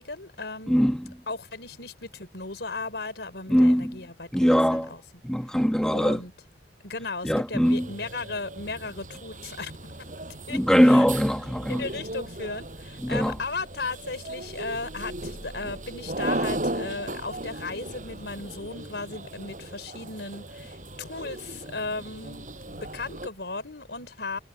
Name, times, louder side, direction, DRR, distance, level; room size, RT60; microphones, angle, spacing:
voice 1, 0.0-0.7 1.3-4.3 4.7-5.0 5.9-6.3 6.8-9.7 10.5-11.1 11.7-24.4, left 3 dB, 70° left, 4.5 m, -36 dB
voice 2, 0.7-1.1 3.5-4.0 4.3-4.9 5.2-6.2 7.2-7.9 10.5-11.9 13.0-13.4, equal, 5° left, 1.3 m, -21 dB
sound 1, 7.6-23.3, right 1 dB, 45° right, 5.5 m, -37 dB
head